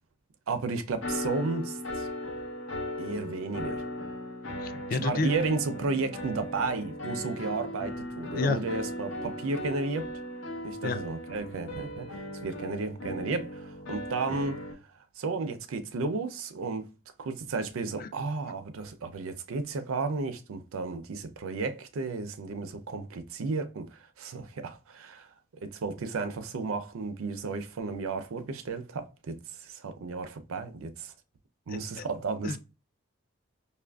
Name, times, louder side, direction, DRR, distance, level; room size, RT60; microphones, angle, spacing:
voice 1, 0.5-2.1 3.0-3.8 4.9-10.1 10.6-14.6 15.2-16.9 17.2-25.3 25.6-31.1 31.7-32.6, right 3 dB, 85° right, 0.5 m, -33 dB
sound 1, 1.0-14.7, left 1 dB, 70° left, 0.7 m, -37 dB
voice 2, 4.6-5.3 8.3-8.6 10.8-11.0 18.0-18.1 31.7-32.1 32.4-32.6, left 4 dB, 45° left, 0.3 m, -30 dB
5.4 x 2.4 x 2.2 m
head